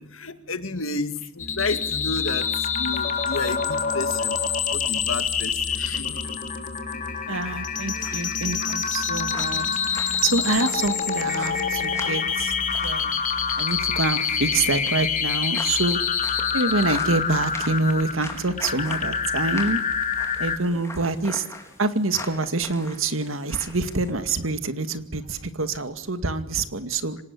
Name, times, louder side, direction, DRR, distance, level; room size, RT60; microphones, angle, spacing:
voice 1, 0.0-2.5 2.7-4.4 4.7-6.3 8.0-8.8 10.4-10.5 20.7-20.8, left 3 dB, 70° left, 10 dB, 2.2 m, -32 dB
sound 1, 1.4-20.6, left 6 dB, 40° left, 3.3 m, -26 dB
voice 2, 7.3-9.7 10.0-12.5 12.8-13.2 13.6-16.0 16.5-19.8 20.4-21.4 21.8-27.2, right 3 dB, 70° right, 10 dB, 2.2 m, -26 dB
sound 2, 7.9-24.1, left 2 dB, 15° left, 4.4 m, -42 dB
25.5 x 19.0 x 9.8 m, 0.89 s
head